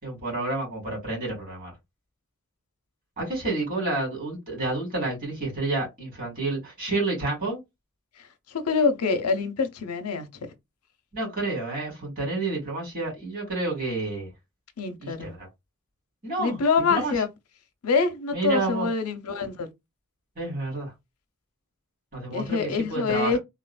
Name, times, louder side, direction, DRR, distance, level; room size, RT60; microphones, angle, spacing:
voice 1, 0.0-1.7 3.2-7.6 11.1-14.3 15.0-15.5 16.2-16.6 16.9-17.1 18.3-18.9 20.4-20.9 22.1-23.4, right 2 dB, 40° right, 2.2 m, -29 dB
voice 2, 8.5-10.5 14.8-15.3 16.4-17.3 17.8-19.7 22.3-23.4, left 4 dB, 75° left, 0.6 m, -25 dB
3.6 x 2.4 x 2.2 m
head